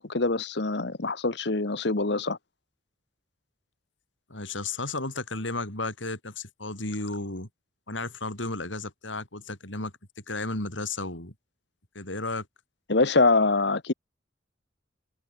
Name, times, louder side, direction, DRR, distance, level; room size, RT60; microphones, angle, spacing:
voice 1, 0.0-2.4 12.9-13.9, left 3 dB, 60° left, 1.2 m, -24 dB
voice 2, 4.3-7.5 7.9-11.3 11.9-12.5, left 2 dB, 85° left, 6.4 m, -33 dB
head